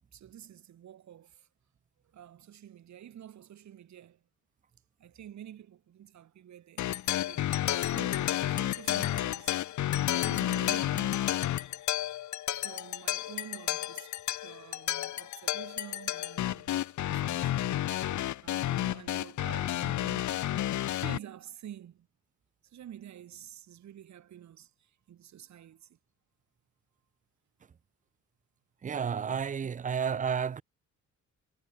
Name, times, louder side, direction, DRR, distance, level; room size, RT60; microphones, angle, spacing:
voice 1, 0.1-1.5 2.0-4.2 5.0-7.5 7.8-11.2 12.5-14.1 14.4-17.9 18.4-20.3 21.0-22.1 22.6-26.0, right 10 dB, 65° right, 4.2 m, -49 dB
sound 1, 6.8-21.2, left 13 dB, 70° left, 1.4 m, -31 dB
voice 2, 28.8-30.6, right 7 dB, 25° right, 0.5 m, -31 dB
cardioid pair, 90°, 30 cm